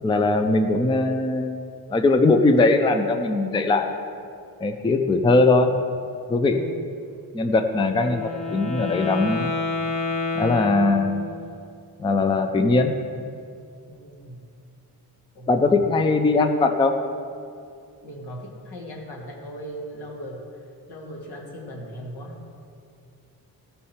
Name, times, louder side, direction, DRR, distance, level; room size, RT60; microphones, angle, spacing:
voice 1, 0.0-1.6 1.9-3.9 4.6-5.7 6.3-6.6 7.3-9.5 10.4-11.3 12.0-12.9 15.5-16.9, left 3 dB, 15° left, 6 dB, 0.3 m, -20 dB
voice 2, 6.5-6.8 13.9-14.5 15.3-15.9 18.0-22.4, equal, 85° left, -2 dB, 2.0 m, -38 dB
Wind instrument woodwind instrument, 7.9-11.5, left 3 dB, 55° left, 1.5 m, -29 dB
15.5 x 5.5 x 4.3 m, 2.4 s
wide cardioid pair, 170°, 38 cm